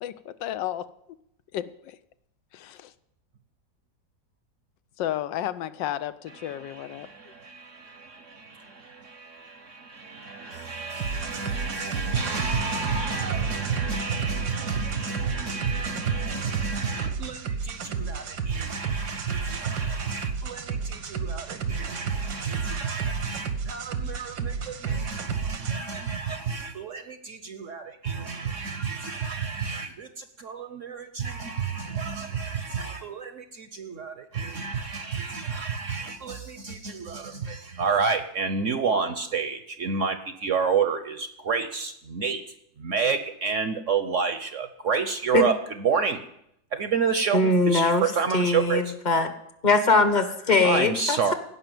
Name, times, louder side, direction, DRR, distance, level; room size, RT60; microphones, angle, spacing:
voice 1, 0.0-0.9 1.5-2.0 2.5-2.9 5.0-7.1, left 12 dB, 85° left, 13 dB, 1.4 m, -32 dB
voice 2, 6.4-42.4 42.8-45.6 45.8-46.2 46.7-48.8 50.6-51.3, right 5 dB, 55° right, 10 dB, 0.9 m, -30 dB
sound 1, 11.0-25.8, right 5 dB, 85° right, 1.9 m, -32 dB
voice 3, 47.3-48.0 48.3-49.3 49.6-51.3, left 3 dB, 30° left, 8 dB, 1.0 m, -21 dB
17.0 x 5.7 x 9.2 m, 0.76 s
omnidirectional pair, 1.9 m